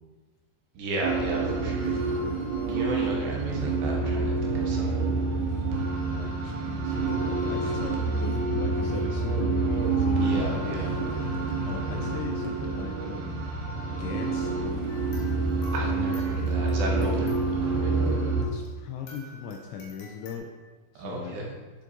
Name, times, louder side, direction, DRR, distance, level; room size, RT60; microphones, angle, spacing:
voice 1, 0.7-2.0 2.7-5.0 7.6-7.7 10.2-10.9 15.7-18.0 21.0-21.5, right 1 dB, 75° right, -1 dB, 2.8 m, -34 dB
sound 1, 1.0-18.5, right 3 dB, 90° right, 3.7 m, -27 dB
voice 2, 6.1-13.6 13.9-14.5 18.4-20.5 20.9-21.4, left 6 dB, 85° left, 3 dB, 2.6 m, -39 dB
sound 2, 14.9-18.8 19.1-20.4, left 2 dB, 60° left, 2.4 m, -48 dB
11.5 x 7.4 x 2.6 m, 1.3 s
omnidirectional pair, 5.5 m